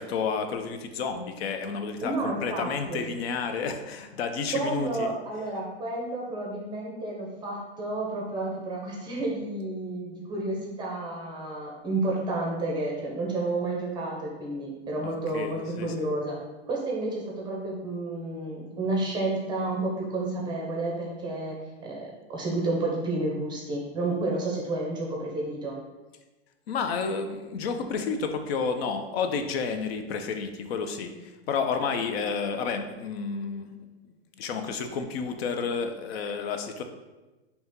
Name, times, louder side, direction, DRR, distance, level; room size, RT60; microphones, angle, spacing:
voice 1, 0.0-5.1 15.0-15.9 26.7-33.7 34.4-36.8, left 5 dB, 65° left, 7 dB, 0.6 m, -31 dB
voice 2, 2.0-3.0 4.5-16.4 16.7-25.8, right 2 dB, 15° right, -2 dB, 0.5 m, -31 dB
4.1 x 2.9 x 3.5 m, 1.1 s
supercardioid pair, 150°, 33 cm